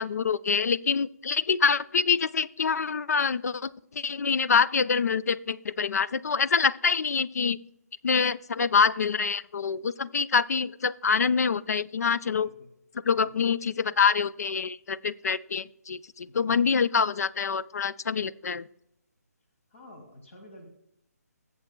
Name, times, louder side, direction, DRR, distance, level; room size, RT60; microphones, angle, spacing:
voice 1, 0.0-7.6 8.0-12.5 13.1-18.7, left 5 dB, 70° left, 17 dB, 0.4 m, -26 dB
voice 2, 12.3-12.7 13.1-13.5 16.3-16.6 19.7-20.7, left 1 dB, 50° left, 2 dB, 2.1 m, -50 dB
21.0 x 7.3 x 2.2 m, 0.81 s
hypercardioid pair, 165°, 9 cm